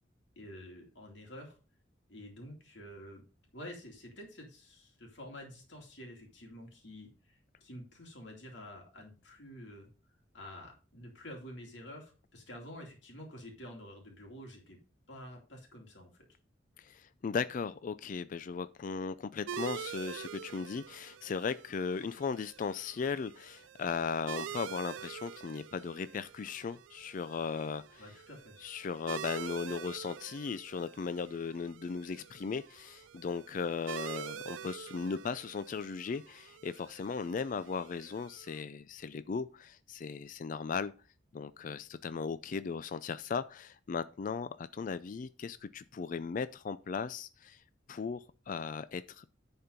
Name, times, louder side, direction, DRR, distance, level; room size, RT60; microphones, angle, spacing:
voice 1, 0.4-1.6 2.1-3.2 3.5-9.9 10.3-14.8 15.1-16.1 28.0-28.6, equal, 65° left, 2.6 m, -49 dB
voice 2, 16.8-28.0 28.6-40.9 41.3-47.6 47.9-49.2, left 5 dB, 45° left, 0.3 m, -37 dB
sound 1, 19.5-38.6, right 8 dB, 80° right, 0.3 m, -46 dB
10.5 x 4.4 x 5.1 m
head